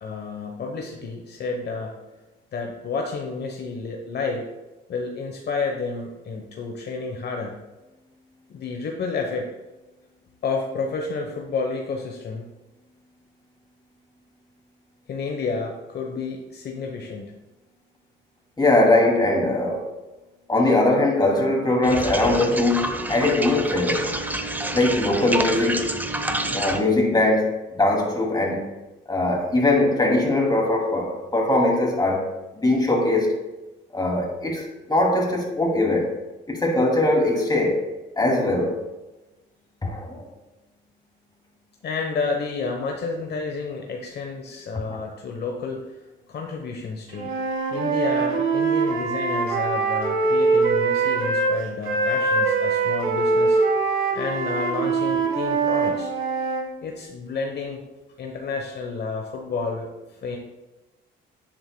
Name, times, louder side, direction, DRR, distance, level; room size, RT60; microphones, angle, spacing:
voice 1, 0.0-1.9 2.5-4.5 4.9-7.6 8.5-9.5 10.4-12.5 15.1-17.3 41.8-45.8 46.3-47.3 47.7-53.6 54.1-56.1 56.8-57.8 58.2-59.9 60.2-60.4, left 4 dB, 55° left, 1 dB, 1.0 m, -30 dB
voice 2, 18.6-19.8 20.5-24.1 24.7-25.8 26.4-28.6 29.1-32.3 32.5-33.4 33.9-36.1 36.5-37.8 38.2-38.8 39.8-40.2 44.9-45.0, left 2 dB, 20° left, -1 dB, 2.6 m, -21 dB
sound 1, 21.8-26.8, right 1 dB, 10° right, 0.7 m, -28 dB
Wind instrument woodwind instrument, 47.1-51.5 51.8-56.6, right 4 dB, 85° right, 1.7 m, -23 dB
10.5 x 7.9 x 2.3 m, 1.1 s
cardioid pair, 90°, 20 cm